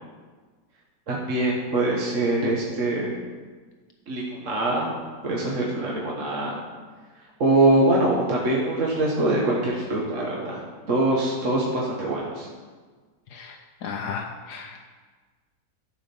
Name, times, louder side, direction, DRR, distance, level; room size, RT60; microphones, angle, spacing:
voice 1, 1.1-3.1 4.1-4.9 5.2-6.6 7.4-10.6 10.9-12.5, right 2 dB, 50° right, -2 dB, 1.5 m, -23 dB
voice 2, 13.3-14.8, left 6 dB, 70° left, 3 dB, 1.2 m, -35 dB
11.5 x 5.0 x 6.9 m, 1.4 s
omnidirectional pair, 1.9 m